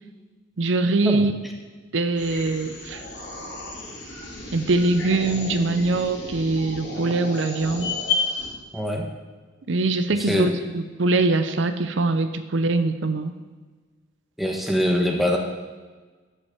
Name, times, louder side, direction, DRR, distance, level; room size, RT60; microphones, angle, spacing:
voice 1, 0.6-1.3 1.9-3.0 4.5-7.9 9.7-13.3, right 2 dB, 75° right, 10 dB, 0.6 m, -23 dB
sound 1, 2.2-8.5, left 3 dB, 65° left, 3.5 m, -32 dB
voice 2, 8.7-9.1 10.1-10.5 14.4-15.4, equal, ahead, 1 dB, 1.2 m, -23 dB
10.5 x 5.9 x 7.1 m, 1.4 s
head